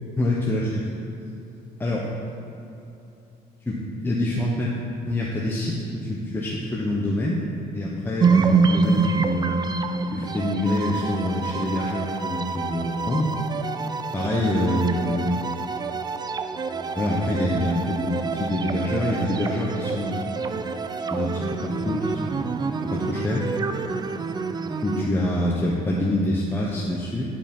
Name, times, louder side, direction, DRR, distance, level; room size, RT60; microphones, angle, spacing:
voice 1, 0.2-0.9 1.8-2.0 3.6-4.7 5.1-7.4 7.7-9.6 10.1-13.3 14.1-15.4 16.6-20.7 21.1-22.5 22.8-23.4 24.5-27.2, left 1 dB, 10° left, -4 dB, 1.0 m, -26 dB
sound 1, 8.2-25.1, right 5 dB, 25° right, 0.4 m, -27 dB
10.5 x 5.2 x 5.4 m, 2.9 s
cardioid pair, 110°, 17 cm